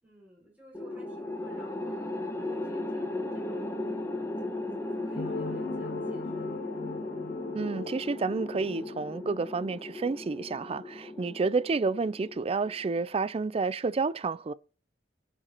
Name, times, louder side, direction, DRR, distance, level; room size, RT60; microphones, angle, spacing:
voice 1, 0.0-3.9 4.7-6.7 11.2-11.4, equal, 10° right, 5.1 m, -54 dB
sound 1, 0.7-13.1, left 2 dB, 15° left, 1.4 m, -36 dB
sound 2, 5.1-10.1, left 3 dB, 50° left, 0.6 m, -40 dB
voice 2, 7.5-14.5, right 4 dB, 30° right, 0.4 m, -30 dB
14.5 x 6.3 x 3.0 m
head